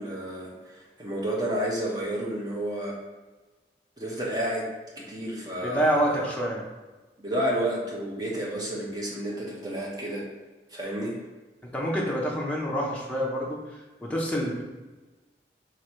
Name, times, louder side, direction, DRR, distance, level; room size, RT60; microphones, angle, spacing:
voice 1, 0.0-3.0 4.0-4.7 5.0-6.3 7.2-10.3 10.7-11.2, right 1 dB, 20° right, -4 dB, 0.8 m, -31 dB
voice 2, 5.6-6.6 11.6-14.6, equal, 5° left, -4 dB, 0.6 m, -27 dB
3.0 x 2.6 x 4.4 m, 1.2 s
head